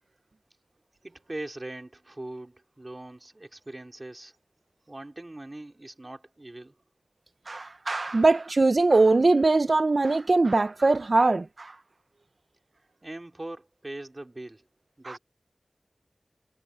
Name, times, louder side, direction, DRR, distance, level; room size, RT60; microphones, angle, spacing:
voice 1, 1.0-4.3 4.9-6.7 8.1-8.2 13.0-14.6 15.0-15.2, right 2 dB, 35° right, 4.0 m, -41 dB
voice 2, 7.5-11.7 15.0-15.2, right 3 dB, 55° right, 0.6 m, -22 dB
wide cardioid pair, 65°, 0 cm